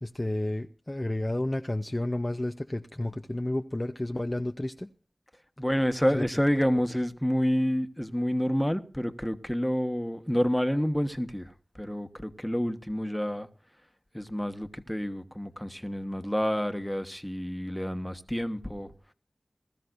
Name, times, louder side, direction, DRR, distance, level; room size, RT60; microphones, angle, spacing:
voice 1, 0.0-4.9 6.1-6.2, left 1 dB, 25° left, 0.7 m, -31 dB
voice 2, 5.6-13.5 14.1-18.9, equal, 5° left, 1.3 m, -28 dB
20.5 x 13.5 x 2.6 m
wide cardioid pair, 45°, 0 cm